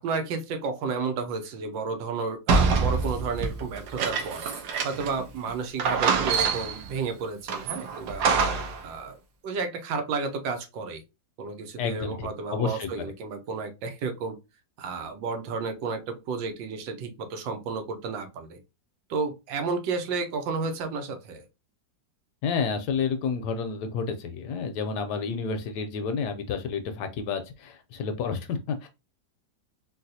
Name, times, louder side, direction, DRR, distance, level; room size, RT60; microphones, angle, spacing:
voice 1, 0.0-4.4 4.8-8.2 8.8-11.0 11.4-14.4 14.8-18.6 19.1-21.4, right 4 dB, 90° right, 1.4 m, -32 dB
sound 1, 2.5-5.2 5.5-5.6 5.8-6.9 7.5-8.8, right 5 dB, 70° right, 1.2 m, -25 dB
voice 2, 11.8-13.1 22.4-28.9, left 5 dB, 75° left, 1.0 m, -30 dB
3.9 x 2.3 x 2.6 m
omnidirectional pair, 2.0 m